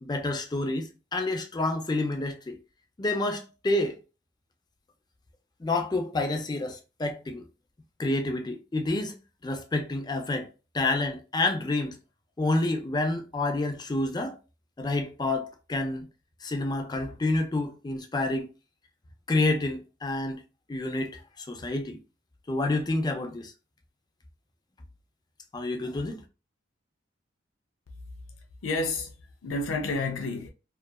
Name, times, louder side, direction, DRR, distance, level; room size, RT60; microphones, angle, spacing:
voice 1, 0.0-2.6 3.0-4.0 5.6-7.4 8.0-9.2 9.4-10.5 10.7-12.0 12.4-14.4 14.8-16.1 16.4-18.5 19.3-20.4 20.7-22.0 22.5-23.5 25.5-26.2, left 2 dB, 20° left, 0.4 m, -28 dB
voice 2, 28.6-30.5, left 3 dB, 90° left, 0.5 m, -30 dB
2.7 x 2.4 x 2.2 m
head